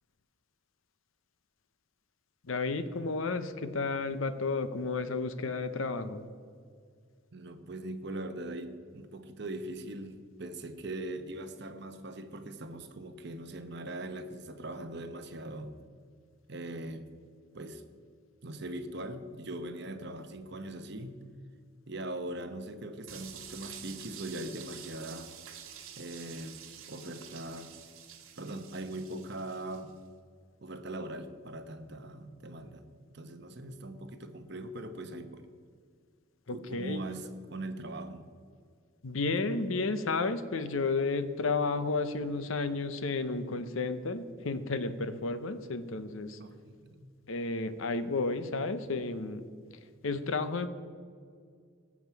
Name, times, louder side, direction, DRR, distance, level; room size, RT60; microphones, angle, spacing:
voice 1, 2.5-6.2 36.5-37.0 39.0-46.4 47.3-49.4 50.0-50.7, left 3 dB, 75° left, 11 dB, 0.7 m, -32 dB
voice 2, 7.3-15.8 16.5-17.1 17.5-17.8 18.4-21.2 21.9-25.3 26.0-26.6 26.9-27.7 28.4-29.9 30.6-32.8 33.1-35.5 36.5-38.3 46.4-47.1, right 1 dB, 55° right, 8 dB, 0.9 m, -41 dB
sound 1, 23.1-29.9, right 9 dB, 75° right, 1.3 m, -48 dB
18.0 x 7.3 x 4.6 m, 2.1 s
head